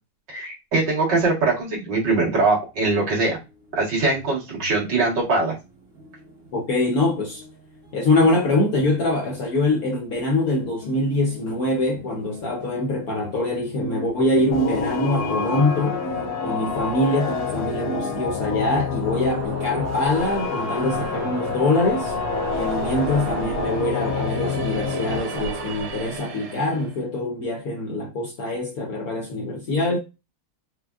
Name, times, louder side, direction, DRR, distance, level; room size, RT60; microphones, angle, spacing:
voice 1, 0.3-3.4 3.7-5.5, right 3 dB, 55° right, 2.2 m, -22 dB
sound 1, 3.2-3.3 3.7-3.8 4.1-18.5, equal, 40° right, 1.0 m, -37 dB
voice 2, 6.5-7.4 7.9-16.0 16.4-22.1 22.5-30.0, left 2 dB, 65° left, 0.9 m, -24 dB
sound 2, 14.5-25.2, left 6 dB, 90° left, 1.7 m, -28 dB
sound 3, 18.7-27.0, right 4 dB, 80° right, 1.5 m, -34 dB
5.0 x 2.0 x 2.4 m
omnidirectional pair, 2.3 m